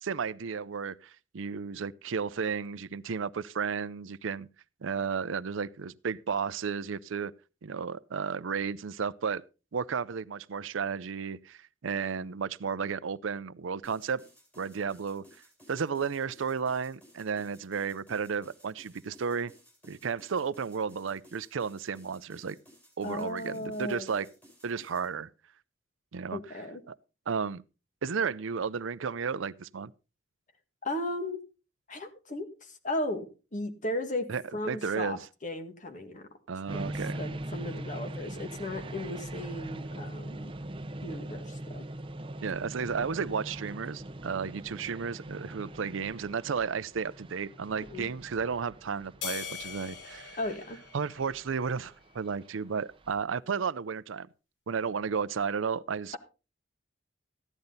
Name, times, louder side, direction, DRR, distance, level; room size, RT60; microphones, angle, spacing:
voice 1, 0.0-4.5 4.8-7.3 7.6-9.4 9.7-14.2 14.6-15.2 15.7-19.5 19.9-22.6 23.0-24.3 24.6-25.3 26.1-26.6 26.9-27.0 27.3-27.6 28.0-29.9 34.3-35.2 36.5-37.2 42.4-50.4 50.9-54.3 54.7-56.2, right 6 dB, 80° right, 0.5 m, -33 dB
sound 1, 13.8-25.1, equal, 10° left, 5.1 m, -59 dB
voice 2, 23.0-24.1 26.3-26.8 30.8-31.4 31.9-36.3 36.7-36.8 37.2-40.5 41.0-41.8 47.9-48.1 50.4-50.8, left 1 dB, 40° left, 1.8 m, -36 dB
sound 2, 36.7-53.2, right 1 dB, 25° right, 0.7 m, -42 dB
sound 3, 49.2-51.8, left 7 dB, 65° left, 1.6 m, -41 dB
14.5 x 10.5 x 4.0 m
head